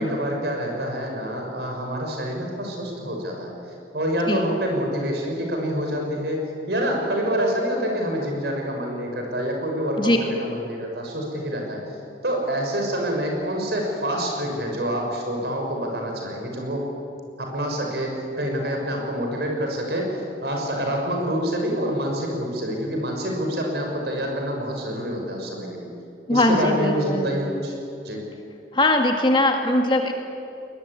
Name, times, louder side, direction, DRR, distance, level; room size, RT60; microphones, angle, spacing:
voice 1, 0.0-6.4 6.7-16.9 17.4-20.1 20.4-25.9 26.3-27.7 28.0-28.2, equal, 65° right, 1 dB, 6.2 m, -27 dB
voice 2, 26.3-27.4 28.7-30.1, left 1 dB, 25° left, 3 dB, 2.2 m, -20 dB
22.0 x 21.0 x 9.8 m, 2.6 s
head